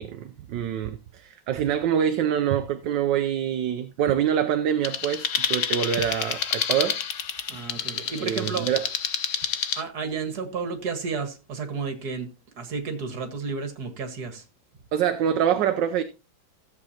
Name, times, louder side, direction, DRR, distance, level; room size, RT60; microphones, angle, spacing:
voice 1, 0.0-7.0 7.9-8.8 14.9-16.0, right 9 dB, 70° right, 1.3 m, -25 dB
sound 1, 4.8-9.8, left 8 dB, 55° left, 0.9 m, -29 dB
voice 2, 7.5-8.7 9.8-12.3 12.6-14.4, right 5 dB, 55° right, 2.1 m, -32 dB
15.5 x 8.0 x 2.8 m
omnidirectional pair, 2.1 m